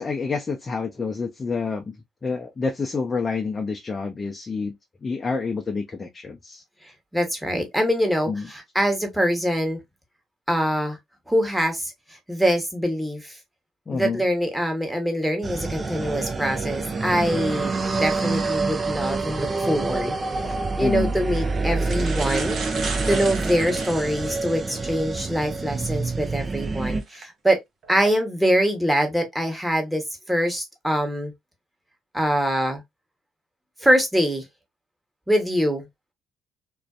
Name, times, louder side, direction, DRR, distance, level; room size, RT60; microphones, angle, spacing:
voice 1, 0.0-2.0 2.2-4.8 5.0-6.6 8.3-8.5 13.9-14.2 20.8-21.1, left 4 dB, 35° left, 0.5 m, -28 dB
voice 2, 6.8-9.8 10.5-11.0 11.3-11.9 12.3-13.4 13.9-17.7 18.0-20.1 20.8-22.6 23.1-27.6 27.9-31.3 32.1-32.8 33.8-34.4 35.3-35.9, equal, 5° right, 1.1 m, -24 dB
sound 1, 15.4-27.0, right 3 dB, 35° right, 0.5 m, -27 dB
sound 2, 20.3-20.5 21.3-21.4 21.7-24.5 25.1-25.2 27.0-27.2 27.8-28.1, right 4 dB, 55° right, 0.8 m, -34 dB
2.5 x 2.2 x 2.3 m
hypercardioid pair, 50°, 0 cm